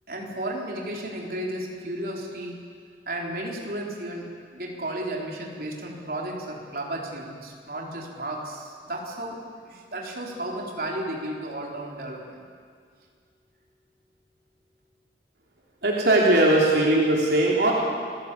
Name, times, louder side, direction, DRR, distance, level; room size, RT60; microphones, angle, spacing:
voice 1, 0.1-2.5 3.1-9.4 9.7-12.4, right 1 dB, 55° right, -1 dB, 4.0 m, -33 dB
voice 2, 15.8-17.7, right 1 dB, 70° right, -3 dB, 3.3 m, -19 dB
29.0 x 17.0 x 8.5 m, 2.1 s
head